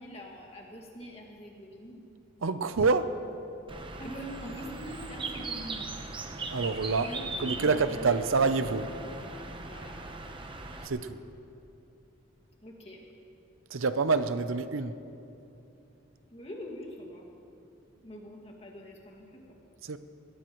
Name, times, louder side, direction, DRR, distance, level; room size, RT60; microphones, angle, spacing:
voice 1, 0.0-2.0 4.0-5.9 7.0-8.1 9.7-10.0 12.6-13.0 16.3-17.3 18.0-19.6, equal, 30° left, -1 dB, 2.0 m, -43 dB
voice 2, 2.4-3.1 6.5-7.1 7.4-8.9 10.8-11.2 13.7-15.0 19.8-20.0, right 4 dB, 75° right, 11 dB, 0.6 m, -27 dB
Bird, 3.7-10.9, right 3 dB, 25° right, 0.9 m, -39 dB
20.5 x 18.0 x 3.1 m, 2.8 s
head